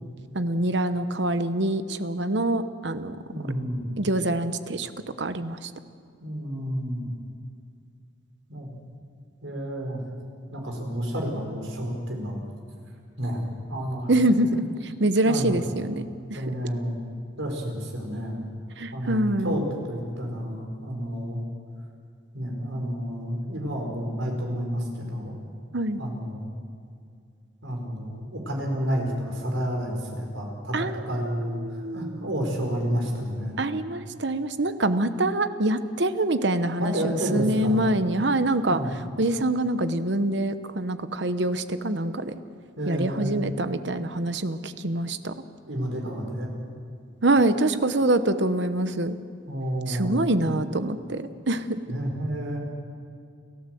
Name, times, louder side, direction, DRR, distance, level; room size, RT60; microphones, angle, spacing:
voice 1, 0.3-3.2 4.0-4.9 5.2-5.7 14.1-14.6 15.0-16.4 18.8-19.6 25.7-26.0 30.7-32.1 33.6-38.8 39.2-42.3 42.9-45.3 47.2-49.2 49.9-51.8, right 1 dB, 60° right, 11 dB, 1.0 m, -25 dB
voice 2, 3.3-3.8 6.2-7.1 8.5-8.8 9.4-10.0 10.5-12.4 13.2-14.1 14.4-14.7 15.2-15.6 16.3-17.0 17.4-18.4 18.9-21.4 22.3-25.4 26.0-26.5 27.6-33.6 36.8-37.8 38.6-38.9 42.8-43.4 45.7-46.5 49.5-50.2 51.9-52.6, equal, 85° right, 1 dB, 4.7 m, -30 dB
29.5 x 13.5 x 7.8 m, 2.3 s
head